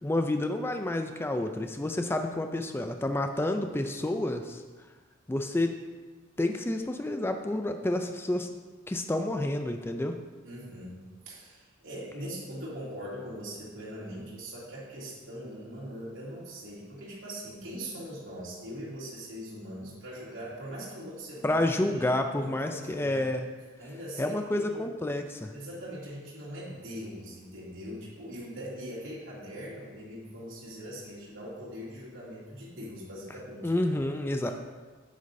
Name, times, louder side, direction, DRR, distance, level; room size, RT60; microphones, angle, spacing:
voice 1, 0.0-4.6 5.3-5.7 6.4-8.5 8.9-10.2 21.4-23.5 24.2-25.5 33.6-34.5, left 1 dB, 10° left, 6 dB, 0.3 m, -29 dB
voice 2, 10.4-23.4 23.8-24.9 25.5-33.9 34.3-34.5, equal, 70° right, -7 dB, 2.6 m, -41 dB
9.3 x 8.3 x 2.6 m, 1.4 s
head